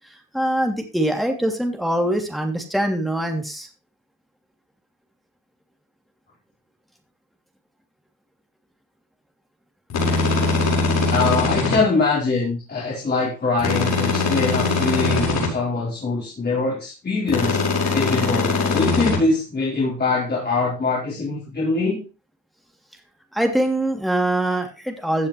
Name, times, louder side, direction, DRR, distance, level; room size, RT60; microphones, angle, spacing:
voice 1, 0.3-3.7 23.3-25.3, right 1 dB, ahead, 3 dB, 2.9 m, -23 dB
sound 1, 9.9-11.8 13.6-15.5 17.3-19.2, left 3 dB, 60° left, 5.8 m, -21 dB
voice 2, 11.1-17.6 17.9-22.0, left 3 dB, 35° left, -4 dB, 4.4 m, -23 dB
15.5 x 7.6 x 3.2 m, 0.31 s
cardioid pair, 90°, 30 cm